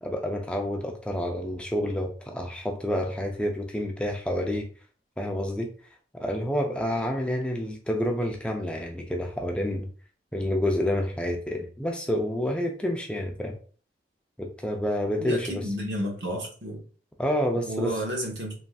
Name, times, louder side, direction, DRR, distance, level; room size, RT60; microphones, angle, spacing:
voice 1, 0.0-4.7 5.2-5.7 6.1-9.9 10.3-13.6 14.4-15.6 17.2-18.0, left 1 dB, 5° left, 2 dB, 0.3 m, -28 dB
voice 2, 15.2-16.8 17.7-18.5, equal, 85° right, 0 dB, 0.9 m, -31 dB
3.2 x 2.5 x 2.3 m, 0.42 s
head